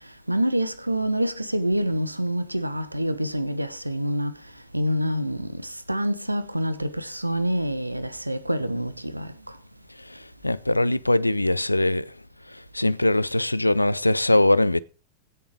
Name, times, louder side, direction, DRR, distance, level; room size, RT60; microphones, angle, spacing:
voice 1, 0.3-4.3 4.7-9.3, equal, 85° right, 1.1 m, -26 dB
voice 2, 10.0-12.2 12.5-14.8, left 1 dB, 85° left, 0.5 m, -22 dB
16.0 x 6.9 x 4.8 m
figure-of-eight pair, 90°, 0 cm